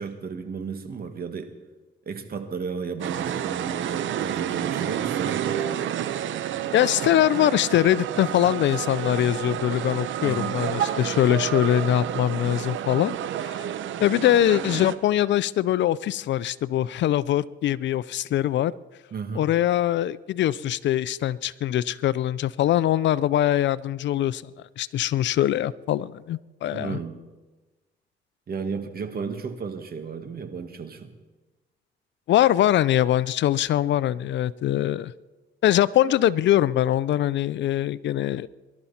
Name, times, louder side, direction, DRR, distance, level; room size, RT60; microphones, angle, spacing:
voice 1, 0.0-1.5 2.1-5.7 10.2-10.5 19.1-19.5 26.7-27.2 28.5-31.1, right 5 dB, 50° right, 7 dB, 2.0 m, -33 dB
sound 1, 3.0-15.0, right 10 dB, 75° right, 0.9 m, -30 dB
voice 2, 6.7-13.2 13.4-13.6 14.0-18.7 19.4-24.4 24.8-27.0 32.3-35.1 35.6-38.5, left 12 dB, 65° left, 19 dB, 0.5 m, -22 dB
24.0 x 12.0 x 4.3 m, 1.2 s
cardioid pair, 90°, 20 cm